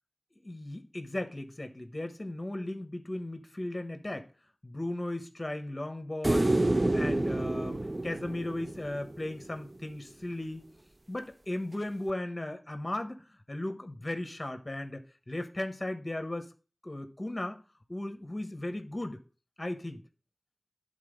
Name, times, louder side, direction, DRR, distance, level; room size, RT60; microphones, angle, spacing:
voice 1, 0.4-4.3 4.6-10.6 11.1-16.5 16.8-17.6 17.9-19.2 19.6-20.0, left 1 dB, 35° left, 1.3 m, -36 dB
sound 1, 6.2-9.5 12.1-12.2, right 2 dB, 40° right, 0.4 m, -28 dB
11.5 x 4.0 x 5.2 m
wide cardioid pair, 45°, 0 cm